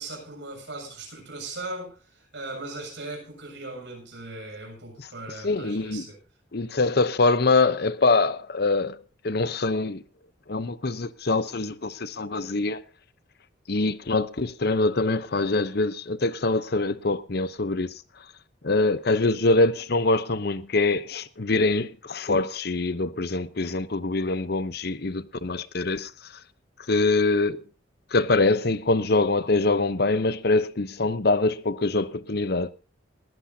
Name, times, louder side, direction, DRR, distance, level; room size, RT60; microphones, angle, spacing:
voice 1, 0.0-6.2, right 2 dB, 70° right, 7.3 m, -38 dB
voice 2, 5.4-6.0 6.5-9.0 9.2-10.0 10.5-12.8 13.7-17.9 18.6-26.1 26.9-27.6 28.1-32.7, left 3 dB, 55° left, 0.8 m, -24 dB
20.0 x 14.5 x 2.8 m
head